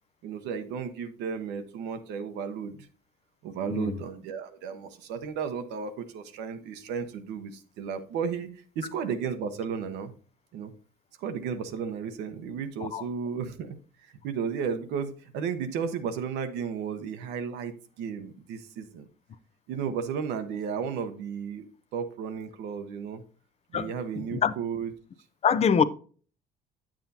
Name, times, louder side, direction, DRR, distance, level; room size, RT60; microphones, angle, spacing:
voice 1, 0.2-2.9 3.4-8.5 8.7-10.1 10.5-10.7 11.2-19.1 19.7-21.7 21.9-23.2 23.7-24.9, right 6 dB, 85° right, 0.9 m, -34 dB
voice 2, 25.4-25.8, left 7 dB, 40° left, 0.5 m, -24 dB
8.9 x 7.4 x 2.7 m
cardioid pair, 110°, 17 cm